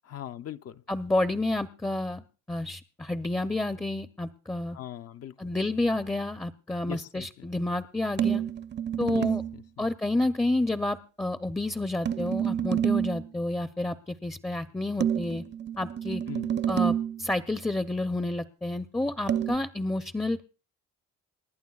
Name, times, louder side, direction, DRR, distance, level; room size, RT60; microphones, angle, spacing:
voice 1, 0.0-0.8 4.7-5.5 6.8-7.5 9.1-9.3 9.5-9.9 16.3-16.5, left 11 dB, 55° left, 0.5 m, -41 dB
voice 2, 0.9-4.8 5.4-8.4 9.0-9.4 9.8-15.4 15.8-16.2 16.7-20.4, left 2 dB, 10° left, 0.5 m, -30 dB
sound 1, 8.2-9.6 12.1-13.3 15.0-17.2 19.3-19.5, right 9 dB, 35° right, 0.6 m, -28 dB
29.0 x 11.0 x 2.3 m
cardioid pair, 90°, 30 cm